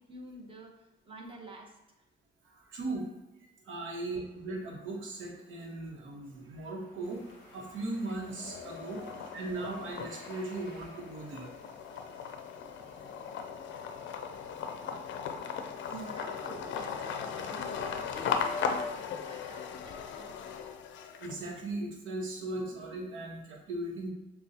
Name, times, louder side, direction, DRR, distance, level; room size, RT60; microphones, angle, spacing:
voice 1, 0.0-1.8 8.9-9.3 13.3-13.4 15.9-20.4, right 2 dB, 25° right, 1 dB, 1.0 m, -48 dB
voice 2, 2.4-3.1 3.6-7.2 7.5-9.0 9.3-11.5 11.9-12.0 12.5-13.1 13.4-13.5 13.9-14.0 14.5-15.2 15.6-15.9 21.2-24.1, right 2 dB, 80° right, -1 dB, 1.1 m, -39 dB
sound 1, 4.1-15.3, right 1 dB, 65° right, 1.2 m, -59 dB
sound 2, 7.1-7.7 8.1-21.6, left 6 dB, 70° left, 0.5 m, -38 dB
6.9 x 2.3 x 2.8 m, 0.99 s
cardioid pair, 90°, 20 cm